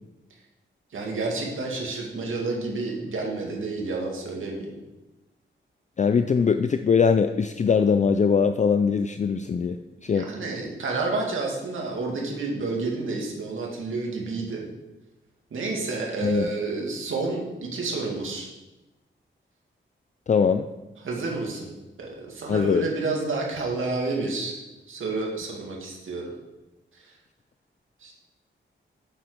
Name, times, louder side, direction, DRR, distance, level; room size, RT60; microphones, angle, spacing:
voice 1, 0.9-4.7 10.1-14.7 15.5-18.5 21.0-21.7 22.0-24.6 24.9-26.2 28.0-28.1, right 3 dB, 85° right, -1 dB, 2.4 m, -30 dB
voice 2, 6.0-9.8 10.0-10.3 16.2-16.5 20.3-20.7 22.5-22.9, left 6 dB, 35° left, 8 dB, 0.4 m, -21 dB
8.8 x 7.5 x 5.1 m, 1.0 s
wide cardioid pair, 120°, 20 cm